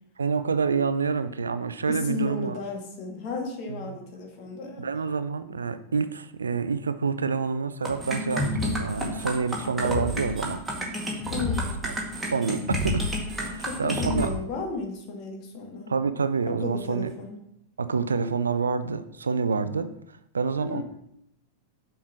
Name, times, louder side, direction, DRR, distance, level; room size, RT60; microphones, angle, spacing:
voice 1, 0.2-2.6 3.7-4.0 4.8-10.6 11.8-11.9 12.3-13.0 13.4-14.3 15.9-17.1 17.8-19.9 20.3-20.8, right 5 dB, 75° right, 12 dB, 0.4 m, -27 dB
voice 2, 1.9-4.9 11.3-11.8 13.6-15.9 16.5-17.4 20.6-20.8, left 4 dB, 45° left, 1 dB, 2.0 m, -34 dB
sound 1, 7.8-14.3, equal, 5° right, 1.9 m, -29 dB
Bass guitar, 8.1-14.3, left 1 dB, 30° right, 2.0 m, -45 dB
7.2 x 4.6 x 5.8 m, 0.76 s
figure-of-eight pair, 90°, 0 cm